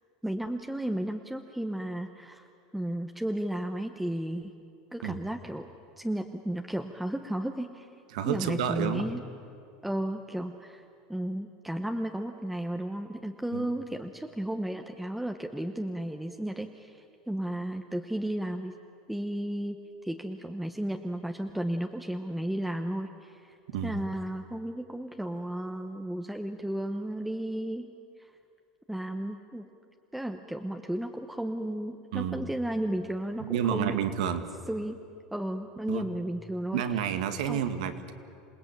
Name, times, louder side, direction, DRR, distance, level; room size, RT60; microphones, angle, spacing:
voice 1, 0.2-2.5 2.7-4.5 4.9-5.7 6.0-7.9 8.2-9.2 9.8-18.7 19.1-23.6 23.8-27.9 28.2-28.3 28.9-29.7 30.1-34.0 34.7-35.0 35.3-36.8 37.5-37.6, right 1 dB, 5° right, 4 dB, 1.0 m, -34 dB
voice 2, 8.1-9.1 13.5-13.7 23.7-24.0 32.1-32.4 33.4-34.4 35.9-36.0 36.7-38.1, right 9 dB, 80° right, 8 dB, 1.9 m, -30 dB
27.5 x 18.5 x 9.0 m, 2.5 s
supercardioid pair, 120°, 4 cm